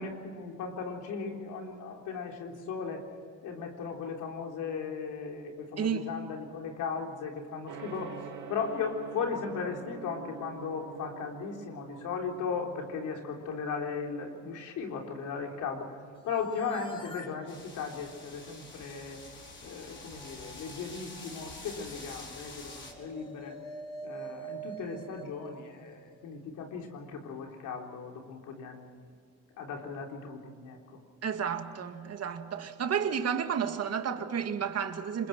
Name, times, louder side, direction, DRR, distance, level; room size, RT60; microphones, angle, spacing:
voice 1, 0.0-3.1 3.4-8.2 8.5-15.9 16.2-19.2 19.6-23.6 24.0-29.1 29.6-30.8, left 5 dB, 90° left, 3.7 m, -37 dB
voice 2, 5.8-6.1 31.2-35.3, right 7 dB, 55° right, 2.1 m, -31 dB
Gong, 7.7-26.6, right 8 dB, 90° right, 2.7 m, -51 dB
sound 1, 16.1-26.3, right 2 dB, 15° left, 2.7 m, -47 dB
sound 2, 17.5-22.9, left 3 dB, 40° left, 5.1 m, -47 dB
26.5 x 22.0 x 6.0 m
cardioid pair, 90°, 30 cm